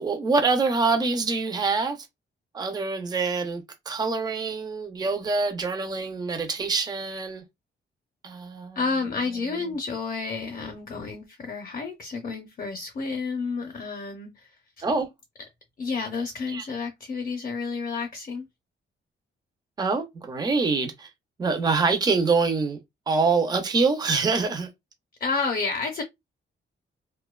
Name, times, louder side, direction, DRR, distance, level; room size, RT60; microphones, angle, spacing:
voice 1, 0.0-2.1 2.5-7.4 8.2-8.8 14.8-15.1 16.5-16.7 19.8-21.1 21.4-22.8 23.1-24.7, right 4 dB, 20° right, 0.5 m, -25 dB
voice 2, 8.8-14.5 14.8-14.9 15.8-18.5 25.2-26.0, left 4 dB, 40° left, 0.6 m, -30 dB
2.6 x 2.1 x 2.2 m
wide cardioid pair, 170°, 21 cm